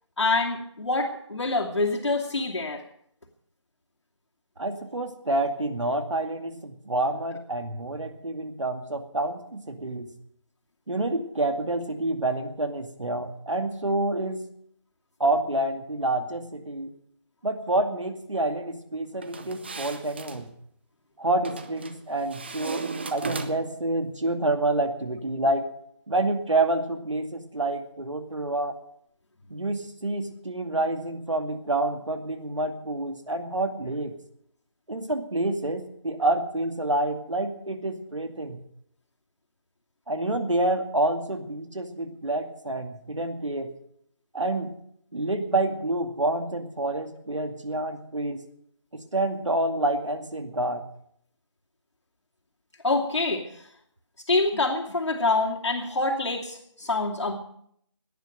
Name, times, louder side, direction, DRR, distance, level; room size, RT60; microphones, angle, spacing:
voice 1, 0.2-2.8 52.8-53.5 54.3-57.3, left 3 dB, 70° left, -1 dB, 2.6 m, -26 dB
voice 2, 4.6-10.1 10.9-14.4 15.2-16.9 17.4-20.5 21.2-22.8 23.1-25.7 26.1-28.7 29.5-34.1 34.9-38.6 40.1-43.7 44.3-44.7 45.1-48.4 48.9-50.8, right 2 dB, 90° right, 6 dB, 2.2 m, -28 dB
sound 1, 19.2-20.4 21.4-22.0 22.3-23.8, right 4 dB, 20° right, 0.7 m, -36 dB
17.5 x 10.5 x 6.6 m, 0.71 s
figure-of-eight pair, 170°, 15 cm